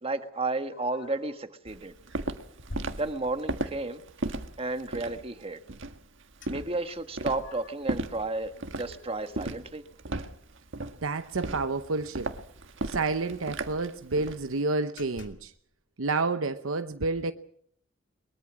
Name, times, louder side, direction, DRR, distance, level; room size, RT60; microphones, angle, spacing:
voice 1, 0.0-1.9 3.0-4.0 4.6-5.6 6.5-9.8, right 2 dB, 30° right, 1.6 m, -32 dB
sound 1, 0.7-1.4 1.9-2.1 2.7-3.8 6.4-6.5 6.9-7.9 8.4-10.2 10.5-10.6 10.9-11.1 12.2-12.3 12.5-12.6 13.1-14.0 14.4-14.6 15.0-15.6, left 1 dB, 60° left, 2.9 m, -48 dB
Walk footsteps, 1.7-14.4, right 2 dB, 65° right, 1.6 m, -36 dB
voice 2, 11.0-12.3 12.9-15.5 16.0-17.3, right 3 dB, 80° right, 0.9 m, -29 dB
22.5 x 22.5 x 6.2 m
head